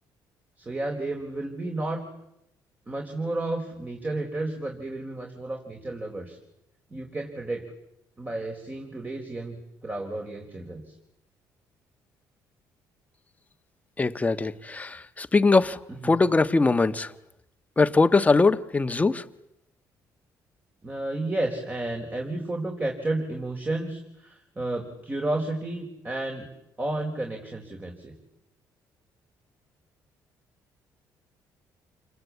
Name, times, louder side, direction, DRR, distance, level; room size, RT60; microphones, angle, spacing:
voice 1, 0.6-2.0 2.9-6.4 6.9-7.7 8.2-11.0 16.0-16.1 20.8-26.5 26.8-28.1, right 2 dB, 25° right, 4.4 m, -32 dB
voice 2, 14.0-17.1 17.8-19.2, left 3 dB, 20° left, 1.4 m, -22 dB
29.0 x 22.0 x 8.5 m
cardioid pair, 95°, 7 cm